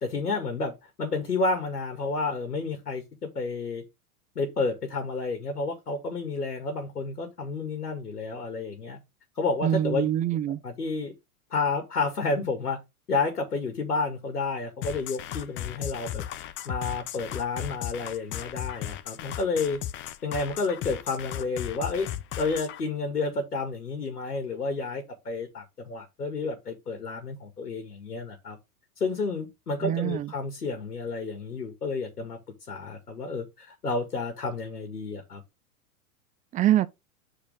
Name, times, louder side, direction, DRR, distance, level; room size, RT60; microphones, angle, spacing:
voice 1, 0.0-3.8 4.4-9.0 9.4-10.1 10.6-11.1 11.5-12.8 13.1-16.2 16.7-19.8 20.2-22.1 22.4-28.6 29.0-32.4 32.7-35.4, left 3 dB, 85° left, 2.4 m, -30 dB
voice 2, 9.6-10.6 29.8-30.3 36.5-36.9, right 12 dB, 20° right, 0.5 m, -24 dB
sound 1, 14.8-22.8, left 12 dB, 25° left, 0.7 m, -36 dB
8.3 x 4.9 x 3.5 m
hypercardioid pair, 100°, 45 cm